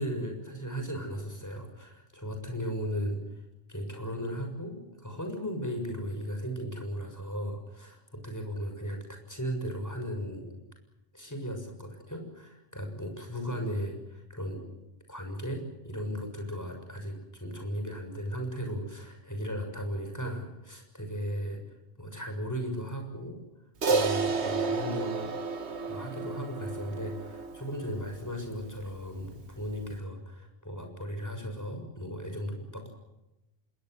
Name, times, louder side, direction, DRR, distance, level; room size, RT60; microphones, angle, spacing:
voice 1, 0.0-3.4 3.7-10.5 11.1-14.6 15.1-21.6 22.0-23.4 23.8-25.3 25.9-32.9, equal, 15° left, 4 dB, 6.8 m, -36 dB
Crash cymbal, 23.8-28.4, right 4 dB, 90° right, 1.8 m, -31 dB
26.5 x 22.0 x 8.1 m, 0.96 s
omnidirectional pair, 1.1 m